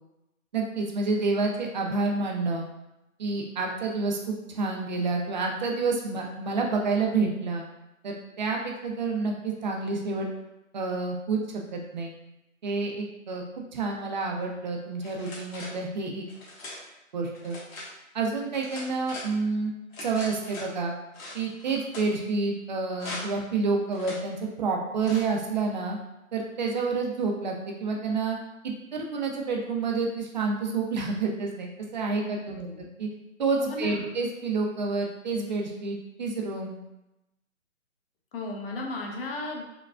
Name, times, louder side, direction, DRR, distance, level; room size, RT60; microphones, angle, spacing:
voice 1, 0.5-2.7 3.2-7.7 8.0-10.3 10.7-12.1 12.6-13.4 13.7-16.2 17.1-17.6 18.1-19.7 20.0-20.9 21.3-26.0 26.3-28.4 28.6-33.1 33.4-36.8, right 4 dB, 35° right, 0 dB, 0.5 m, -29 dB
sound 1, 15.0-15.8 16.3-16.8 17.3-17.9 18.5-19.3 19.9-20.7 21.1-22.1 22.9-23.5 23.9-24.2 25.0-25.4, left 2 dB, 75° left, 1.4 m, -41 dB
voice 2, 32.5-32.8 33.6-34.1 38.3-39.6, left 2 dB, 45° left, 0 dB, 0.8 m, -35 dB
4.8 x 2.3 x 2.2 m, 0.92 s
hypercardioid pair, 145°, 41 cm